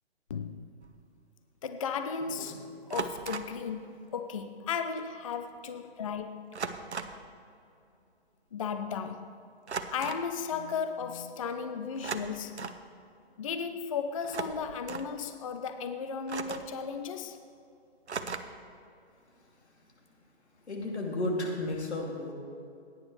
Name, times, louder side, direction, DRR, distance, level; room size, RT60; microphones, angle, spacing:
voice 1, 0.3-0.7 1.6-6.5 8.5-9.3 9.9-12.6 13.4-17.4, left 6 dB, 35° left, 8 dB, 0.4 m, -35 dB
sound 1, 0.8-1.0 2.9-3.6 5.0-5.1 5.3-5.6 6.5-7.3 9.7-10.3 11.9-12.8 14.2-15.1 16.3-16.8 18.1-18.7, right 5 dB, 85° right, 0.8 m, -37 dB
voice 2, 20.7-22.3, left 2 dB, 85° left, -1 dB, 2.6 m, -33 dB
16.5 x 9.6 x 3.2 m, 2.6 s
figure-of-eight pair, 140°, 33 cm